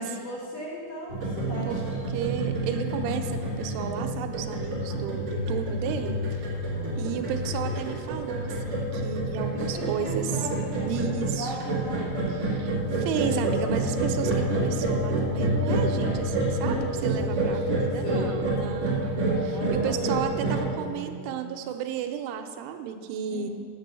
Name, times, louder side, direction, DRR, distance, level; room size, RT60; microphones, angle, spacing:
voice 1, 0.0-1.8 6.7-7.8 9.5-12.1 16.3-18.4 19.5-21.4 23.3-23.5, equal, 65° left, -5 dB, 2.1 m, -38 dB
sound 1, 1.1-20.6, right 1 dB, 40° right, 2.5 m, -28 dB
voice 2, 2.1-6.4 7.0-10.3 10.9-11.5 12.3-23.5, right 8 dB, 90° right, 6 dB, 3.1 m, -33 dB
9.1 x 6.8 x 6.8 m, 2.1 s
omnidirectional pair, 5.4 m